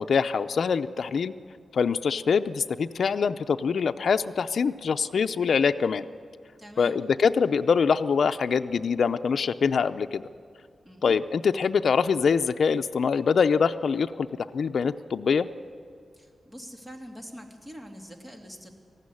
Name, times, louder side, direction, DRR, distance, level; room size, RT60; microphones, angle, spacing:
voice 1, 0.0-1.3 1.7-6.0 6.8-10.2 11.0-14.3 14.5-15.5, left 6 dB, 70° left, 8 dB, 0.5 m, -24 dB
voice 2, 6.6-7.0 10.8-11.2 16.1-18.7, equal, 15° right, 2 dB, 2.6 m, -44 dB
19.0 x 15.0 x 9.9 m, 2.2 s
wide cardioid pair, 110°, 0 cm